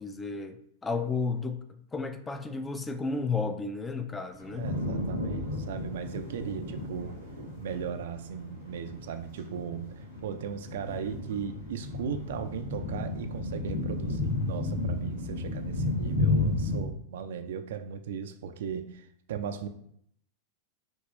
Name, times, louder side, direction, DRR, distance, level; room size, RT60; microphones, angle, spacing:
voice 1, 0.0-4.7, left 4 dB, 15° left, 0.4 m, -33 dB
sound 1, 4.3-16.8, left 2 dB, 85° left, 1.6 m, -33 dB
voice 2, 4.5-7.1 7.6-19.7, right 7 dB, 60° right, 0.4 m, -37 dB
5.3 x 2.9 x 3.0 m
figure-of-eight pair, 90°, 0 cm